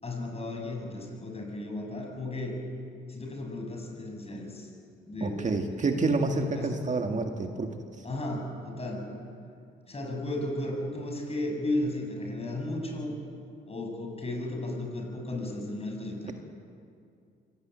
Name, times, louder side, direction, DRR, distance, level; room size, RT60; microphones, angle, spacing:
voice 1, 0.0-2.6 3.1-4.7 5.1-5.5 5.7-6.0 6.5-6.8 8.0-9.1 9.9-13.2 13.7-16.3, left 1 dB, 30° left, 2 dB, 7.1 m, -34 dB
voice 2, 5.2-7.7 8.0-8.1, right 3 dB, 35° right, 4 dB, 2.0 m, -28 dB
24.5 x 17.5 x 9.3 m, 2.4 s
cardioid pair, 90°, 20 cm